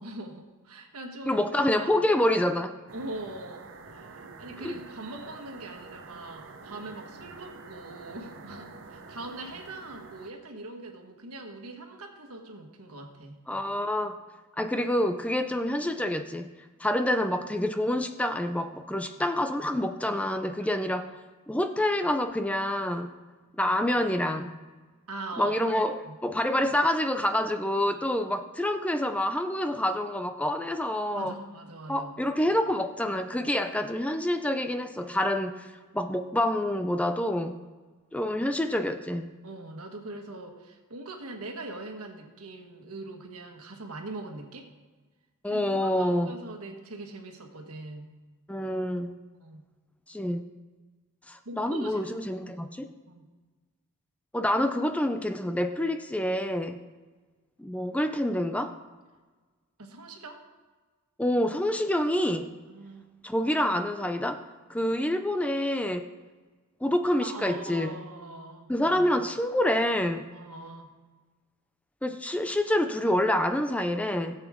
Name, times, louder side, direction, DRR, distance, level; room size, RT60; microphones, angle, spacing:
voice 1, 0.0-1.4 1.8-2.0 2.9-13.4 20.6-20.8 25.1-25.8 26.0-26.2 31.1-32.1 33.6-33.7 39.4-44.7 45.5-48.1 49.4-49.6 51.4-52.1 53.1-53.3 59.8-60.4 62.7-63.0 67.2-68.7 70.3-70.9, right 2 dB, 80° right, 3 dB, 1.5 m, -42 dB
voice 2, 1.3-2.8 4.6-4.7 13.5-14.2 14.6-16.5 16.8-21.1 21.5-23.1 23.6-24.5 25.4-31.4 31.9-35.7 35.9-37.6 38.1-39.3 45.4-46.3 48.5-49.1 50.1-50.4 51.3-52.9 54.3-56.8 57.6-58.8 61.2-62.5 63.2-64.4 64.7-66.1 66.8-67.9 68.7-70.3 72.0-74.4, left 1 dB, 5° left, 8 dB, 0.4 m, -27 dB
sound 1, 2.9-10.3, right 3 dB, 55° right, 0.8 m, -47 dB
17.0 x 8.1 x 3.6 m, 1.3 s
head